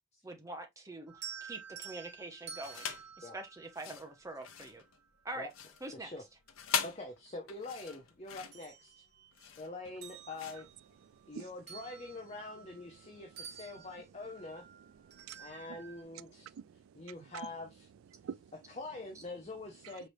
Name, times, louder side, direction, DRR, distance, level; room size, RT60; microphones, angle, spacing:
voice 1, 0.2-1.2 1.5-2.9 3.3-4.8 5.2-5.5 5.8-6.1, right 2 dB, 15° right, 0.8 m, -44 dB
sound 1, 1.1-4.4 6.1-6.2 6.7-7.9 8.3-9.5 9.9-13.1 13.4-16.0, right 7 dB, 50° right, 1.0 m, -51 dB
sound 2, 2.6-3.1 3.7-11.5, left 7 dB, 85° left, 0.7 m, -41 dB
voice 2, 5.9-6.2 6.8-9.0 9.6-10.7 11.3-14.7 15.4-16.5 17.0-17.9 18.7-20.1, left 2 dB, 30° left, 0.7 m, -45 dB
voice 3, 11.1-11.5 13.7-13.9 14.9-15.8 16.3-17.3 18.1-18.5 19.8-19.9, right 7 dB, 80° right, 0.3 m, -49 dB
4.6 x 3.2 x 2.6 m
head